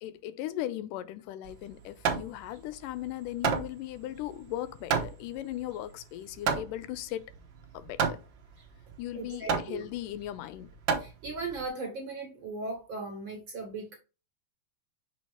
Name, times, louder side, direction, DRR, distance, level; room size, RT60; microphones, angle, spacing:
voice 1, 0.0-7.3 7.7-8.2 9.0-10.7, left 13 dB, 85° left, 2.2 m, -38 dB
Hammer, 1.4-11.7, right 6 dB, 85° right, 1.0 m, -33 dB
voice 2, 9.1-9.8 11.0-14.0, right 3 dB, 50° right, 1.7 m, -38 dB
6.5 x 4.5 x 3.3 m
omnidirectional pair, 3.8 m